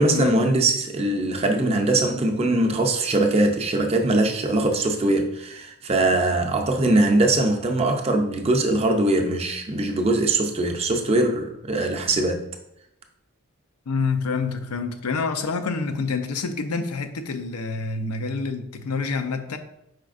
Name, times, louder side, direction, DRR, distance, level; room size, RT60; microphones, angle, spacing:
voice 1, 0.0-12.4, right 2 dB, 25° right, 0.4 m, -21 dB
voice 2, 13.9-19.6, left 4 dB, 90° left, 0.5 m, -27 dB
5.0 x 4.2 x 2.4 m
head